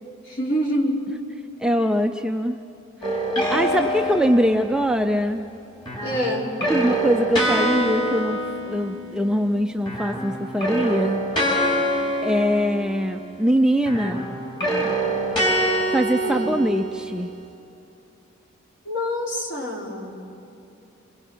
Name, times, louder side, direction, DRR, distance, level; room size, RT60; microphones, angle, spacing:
voice 1, 0.3-1.0 6.0-6.5 16.2-16.5 18.9-20.2, equal, 55° left, -2 dB, 4.2 m, -26 dB
voice 2, 1.6-2.6 3.1-3.2 3.5-5.5 6.7-11.2 12.2-14.3 15.9-17.3, equal, 5° right, 5 dB, 0.5 m, -22 dB
sound 1, 3.0-4.9 5.8-9.5 9.8-13.4 13.8-17.3, right 1 dB, 20° left, 4.5 m, -25 dB
28.5 x 22.5 x 6.2 m, 2.7 s
head